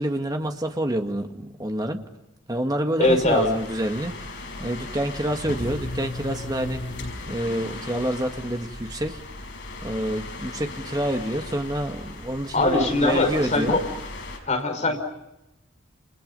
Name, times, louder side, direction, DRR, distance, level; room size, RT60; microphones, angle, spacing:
voice 1, 0.0-2.0 2.5-6.9 7.3-9.2 9.8-13.8 14.9-15.0, right 1 dB, 20° right, 4 dB, 2.0 m, -27 dB
sound 1, 3.0-14.4, left 2 dB, 65° left, 6.0 m, -36 dB
voice 2, 3.0-3.5 12.5-13.8 14.5-15.0, left 2 dB, 40° left, 4 dB, 5.4 m, -21 dB
29.0 x 29.0 x 5.5 m, 0.88 s
head